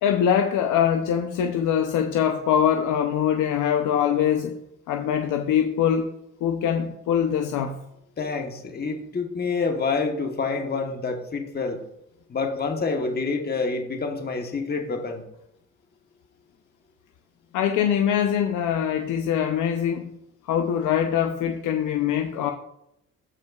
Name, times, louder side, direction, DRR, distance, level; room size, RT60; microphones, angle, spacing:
voice 1, 0.0-4.6 4.9-6.1 6.4-7.8 17.5-20.1 20.5-22.5, left 9 dB, 85° left, 4 dB, 0.7 m, -23 dB
voice 2, 8.2-11.8 12.3-15.2, left 4 dB, 30° left, 4 dB, 1.2 m, -27 dB
15.5 x 5.3 x 2.4 m, 0.79 s
cardioid pair, 90°, 30 cm